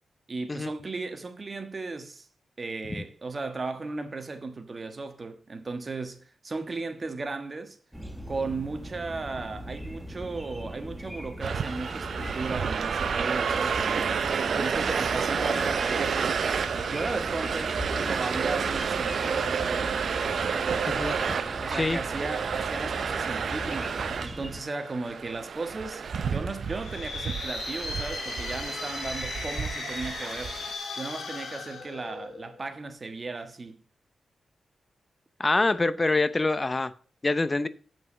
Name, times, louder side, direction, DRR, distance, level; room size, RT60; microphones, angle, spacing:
voice 1, 0.3-2.3 2.6-7.8 8.3-14.0 14.4-16.2 16.9-20.0 21.6-30.6 31.0-33.8, right 3 dB, 40° right, 1.3 m, -36 dB
sound 1, 7.9-24.6, equal, 10° right, 1.1 m, -39 dB
sound 2, 11.4-30.7, right 6 dB, 65° right, 0.6 m, -30 dB
sound 3, 26.7-32.6, left 3 dB, 75° left, 3.0 m, -36 dB
voice 2, 35.4-36.9 37.2-37.7, left 2 dB, 30° left, 0.6 m, -25 dB
7.3 x 6.0 x 6.7 m
cardioid pair, 80°, 0 cm